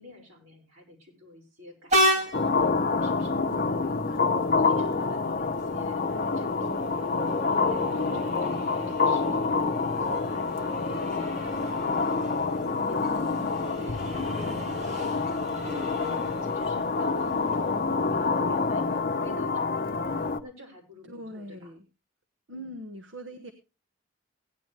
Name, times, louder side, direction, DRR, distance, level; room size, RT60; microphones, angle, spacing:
voice 1, 0.0-21.7 22.5-22.7, left 1 dB, 75° right, 0 dB, 5.5 m, -50 dB
Train, 1.9-19.2, equal, 35° right, 2.2 m, -35 dB
sound 1, 2.3-20.4, left 4 dB, 45° left, 0.8 m, -27 dB
voice 2, 15.6-16.5 21.0-21.8 22.5-23.5, equal, 60° right, 7 dB, 1.1 m, -43 dB
17.0 x 9.8 x 3.2 m, 0.28 s
head